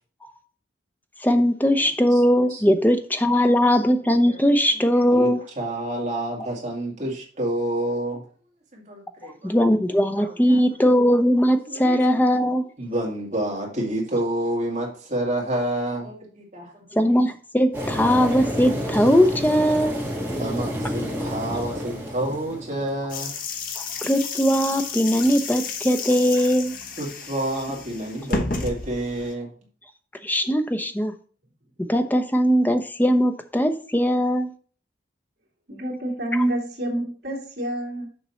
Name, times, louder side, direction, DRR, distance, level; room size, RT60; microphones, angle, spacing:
voice 1, 1.2-5.4 9.4-12.7 16.9-20.0 23.8-26.7 30.2-31.1 31.8-34.5, equal, 10° left, 0.6 m, -20 dB
voice 2, 4.1-4.4 4.7-4.8 5.1-5.3 5.6-8.2 8.7-9.7 10.2-10.6 11.7-12.0 12.8-16.8 17.1-17.2 20.4-23.3 27.0-29.5, right 1 dB, 40° right, 2.4 m, -29 dB
sound 1, 17.7-23.1, equal, 10° right, 1.7 m, -29 dB
sound 2, 23.1-29.3, left 4 dB, 45° left, 0.9 m, -32 dB
voice 3, 35.7-38.1, right 1 dB, 65° right, 2.6 m, -27 dB
6.9 x 5.2 x 4.3 m
head